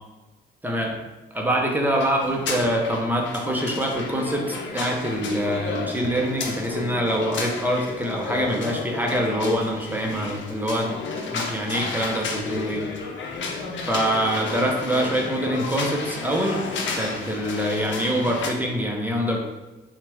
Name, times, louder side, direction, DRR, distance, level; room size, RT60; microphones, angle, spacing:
voice 1, 0.6-1.0 1.3-11.0 11.3-12.8 13.9-19.4, equal, 10° right, 0 dB, 0.9 m, -25 dB
sound 1, 1.9-18.5, left 4 dB, 70° left, 0.8 m, -32 dB
5.9 x 2.5 x 3.5 m, 1.1 s
cardioid pair, 90°, 20 cm